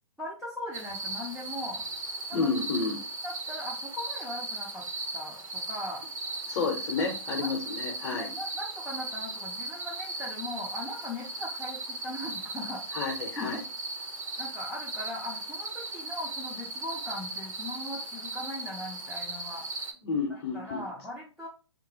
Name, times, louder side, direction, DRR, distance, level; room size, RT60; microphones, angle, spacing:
voice 1, 0.2-1.8 3.2-4.8 5.1-6.0 7.0-7.5 8.1-13.1 13.4-13.6 14.4-19.7 20.3-21.5, left 1 dB, ahead, -6 dB, 0.3 m, -39 dB
sound 1, 0.7-19.9, right 2 dB, 85° right, 0.7 m, -37 dB
voice 2, 2.3-3.0 6.5-8.3 12.9-13.6 20.0-20.8, left 4 dB, 35° left, 2 dB, 0.6 m, -30 dB
2.9 x 2.0 x 2.6 m, 0.34 s
figure-of-eight pair, 130°, 17 cm